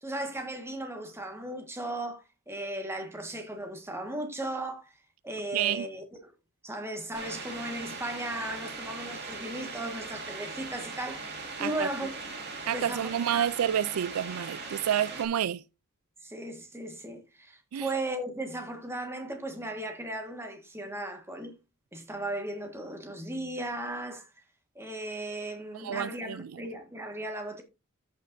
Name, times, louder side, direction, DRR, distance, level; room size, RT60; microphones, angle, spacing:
voice 1, 0.0-5.0 5.2-6.3 6.6-12.4 12.7-13.5 16.2-21.5 21.9-24.4 24.7-27.6, right 1 dB, 10° right, 1.5 m, -36 dB
voice 2, 5.5-5.8 11.6-11.9 12.7-15.6 17.7-17.9 25.7-26.6, right 10 dB, 85° right, 0.4 m, -29 dB
sound 1, 7.1-15.3, right 4 dB, 50° right, 2.2 m, -40 dB
14.5 x 5.3 x 2.6 m
head